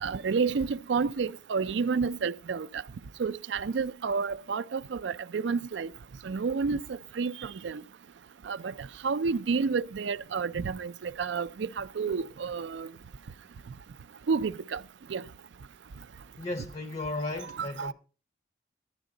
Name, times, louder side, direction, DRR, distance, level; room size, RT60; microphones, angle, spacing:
voice 1, 0.0-2.8 3.2-5.9 6.2-7.8 8.5-12.9 14.3-14.8 15.1-15.2 17.5-17.9, right 5 dB, 75° right, 0.4 m, -30 dB
voice 2, 16.4-17.9, left 2 dB, 35° left, 0.6 m, -35 dB
12.0 x 10.5 x 3.8 m
head